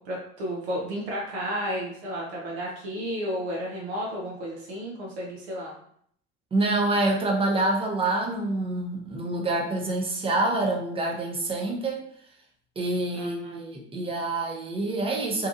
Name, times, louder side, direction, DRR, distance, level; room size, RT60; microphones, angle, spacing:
voice 1, 0.1-5.7 13.1-13.6, equal, 70° right, -3 dB, 0.7 m, -32 dB
voice 2, 6.5-12.0 12.8-15.5, right 2 dB, 15° right, 0 dB, 0.7 m, -26 dB
2.8 x 2.3 x 2.4 m, 0.66 s
figure-of-eight pair, 65°, 33 cm